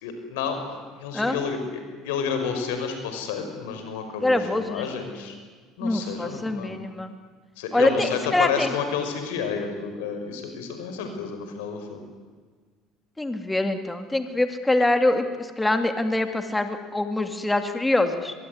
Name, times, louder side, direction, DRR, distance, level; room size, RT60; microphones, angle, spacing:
voice 1, 0.0-5.3 5.8-6.9 7.6-12.1, left 6 dB, 85° left, 6 dB, 5.4 m, -30 dB
voice 2, 4.2-4.9 5.8-7.1 7.7-8.7 13.2-18.3, left 2 dB, 10° left, 7 dB, 2.7 m, -24 dB
23.5 x 22.0 x 9.8 m, 1.5 s
supercardioid pair, 85°, 0 cm